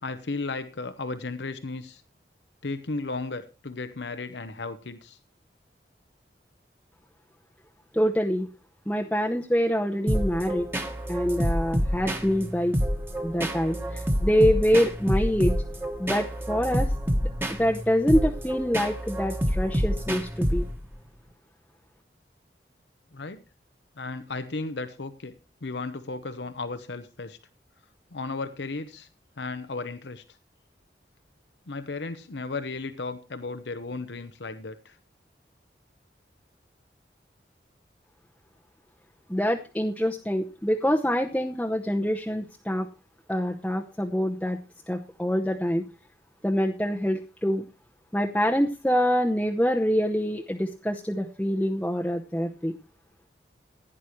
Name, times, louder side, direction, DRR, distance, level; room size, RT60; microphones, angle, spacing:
voice 1, 0.0-2.0 2.6-5.2 23.1-23.4 24.0-25.3 25.6-27.4 28.1-29.1 29.4-30.2 31.7-35.0, left 3 dB, 80° left, 10 dB, 0.9 m, -34 dB
voice 2, 7.9-8.5 8.9-10.7 11.1-12.8 13.2-15.6 16.0-16.9 17.6-20.7 39.3-42.9 43.3-44.6 44.9-45.8 46.4-47.6 48.1-52.8, equal, 5° left, 0 dB, 0.8 m, -25 dB
sound 1, 10.1-20.9, equal, 10° right, 1.4 m, -28 dB
16.0 x 10.0 x 3.1 m, 0.32 s
head